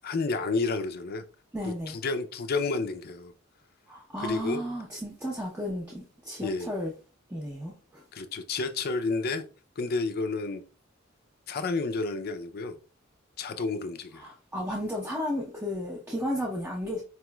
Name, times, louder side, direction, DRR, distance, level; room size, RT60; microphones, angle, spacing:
voice 1, 0.0-1.2 1.6-3.3 4.2-4.6 6.4-6.7 8.1-9.4 9.8-10.6 11.5-12.8 13.4-14.2, left 3 dB, 50° left, 0.5 m, -30 dB
voice 2, 1.5-2.0 3.9-6.9 7.3-8.0 14.2-17.0, equal, 10° right, 0.6 m, -33 dB
4.6 x 3.0 x 2.2 m
head